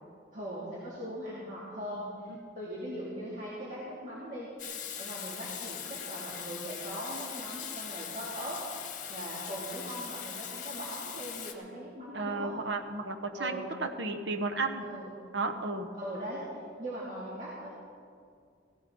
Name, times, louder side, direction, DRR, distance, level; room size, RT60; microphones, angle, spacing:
voice 1, 0.3-4.5 5.0-8.6 9.1-12.5 13.3-13.6 14.8-15.1 16.0-16.4 16.8-17.7, equal, 45° right, -7 dB, 2.6 m, -40 dB
Water tap faucet / Sink (filling or washing), 4.6-11.5, left 8 dB, 45° left, 1.1 m, -41 dB
voice 2, 12.1-14.8 15.3-15.9, right 3 dB, 75° right, 6 dB, 1.1 m, -33 dB
16.5 x 15.0 x 3.9 m, 2.3 s
head